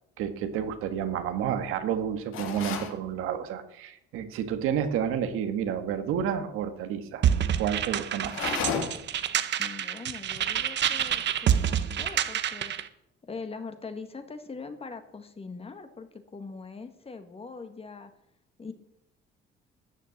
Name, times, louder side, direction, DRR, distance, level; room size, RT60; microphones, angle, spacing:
voice 1, 0.2-7.3 7.6-8.4, right 8 dB, 80° right, 8 dB, 1.6 m, -30 dB
sound 1, 2.3-3.0 8.2-9.2, left 6 dB, 70° left, 2.4 m, -32 dB
sound 2, 7.2-12.9, right 9 dB, 55° right, 1.0 m, -27 dB
voice 2, 9.6-12.7 13.2-18.1 18.6-18.7, left 4 dB, 30° left, 8 dB, 1.9 m, -42 dB
13.0 x 6.7 x 8.8 m, 0.76 s
cardioid pair, 90°, 21 cm